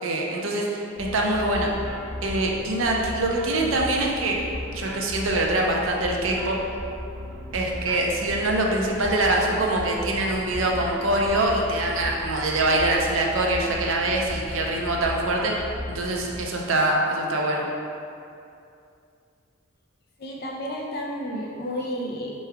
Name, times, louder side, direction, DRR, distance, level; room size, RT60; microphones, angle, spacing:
voice 1, 0.0-1.7 2.2-4.4 4.7-6.6 7.5-15.5 15.9-17.6, right 2 dB, 70° right, 0 dB, 0.6 m, -24 dB
sound 1, 1.0-16.4, left 1 dB, 5° right, 0.9 m, -36 dB
voice 2, 20.2-22.3, equal, 50° left, -1 dB, 0.6 m, -31 dB
4.6 x 3.1 x 3.5 m, 2.6 s
head